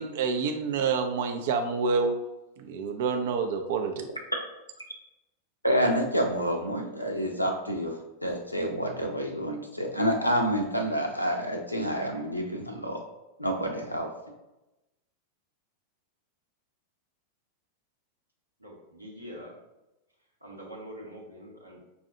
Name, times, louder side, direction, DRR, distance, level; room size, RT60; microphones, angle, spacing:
voice 1, 0.0-2.2 2.6-4.1, right 5 dB, 55° right, 5 dB, 0.5 m, -28 dB
voice 2, 5.6-7.9 8.2-13.0 13.4-14.1, equal, 85° left, 3 dB, 0.5 m, -28 dB
voice 3, 18.6-19.5 20.4-21.8, equal, 85° right, -3 dB, 0.9 m, -44 dB
5.5 x 2.3 x 2.8 m, 0.97 s
figure-of-eight pair, 90°, 0 cm